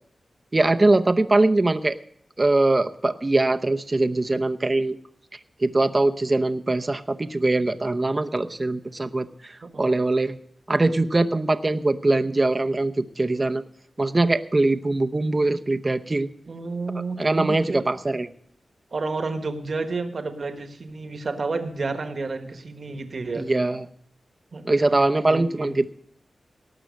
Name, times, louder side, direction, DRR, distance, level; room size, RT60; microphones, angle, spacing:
voice 1, 0.5-2.0 2.4-5.0 5.6-10.4 10.7-13.6 14.0-16.3 17.2-18.3 23.3-23.8 24.6-25.9, right 2 dB, 30° right, 9 dB, 0.7 m, -22 dB
voice 2, 16.5-17.8 18.9-23.5 24.5-25.8, right 3 dB, 60° right, 8 dB, 1.4 m, -31 dB
18.0 x 6.2 x 6.4 m, 0.66 s
cardioid pair, 70°, 0 cm